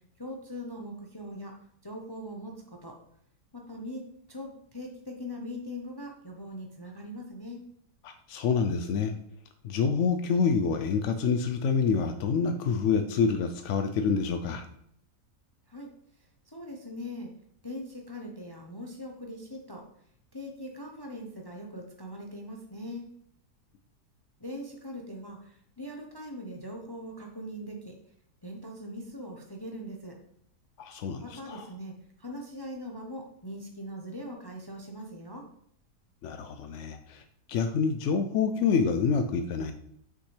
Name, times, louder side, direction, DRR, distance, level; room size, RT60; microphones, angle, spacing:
voice 1, 0.2-1.6 1.8-3.0 3.5-7.6 15.7-15.9 16.5-17.3 17.6-19.8 20.3-23.0 24.4-27.9 28.4-30.2 31.2-35.5, equal, 30° left, 1 dB, 0.4 m, -41 dB
voice 2, 8.0-9.1 9.6-14.7 30.8-31.7 36.2-37.2 37.5-39.7, left 5 dB, 75° left, 8 dB, 0.6 m, -27 dB
6.2 x 5.7 x 3.2 m, 0.70 s
omnidirectional pair, 1.8 m